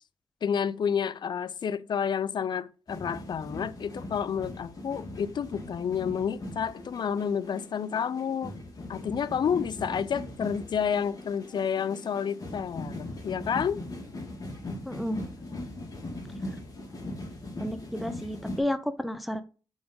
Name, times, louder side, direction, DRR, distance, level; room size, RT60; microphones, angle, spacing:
voice 1, 0.4-8.5 8.9-13.8, left 7 dB, 60° left, 0.4 m, -30 dB
sound 1, 2.9-18.6, left 1 dB, 45° left, 2.2 m, -40 dB
voice 2, 14.9-15.2 17.6-19.4, left 1 dB, ahead, 0.6 m, -31 dB
5.1 x 3.6 x 5.2 m
cardioid pair, 55°, 9 cm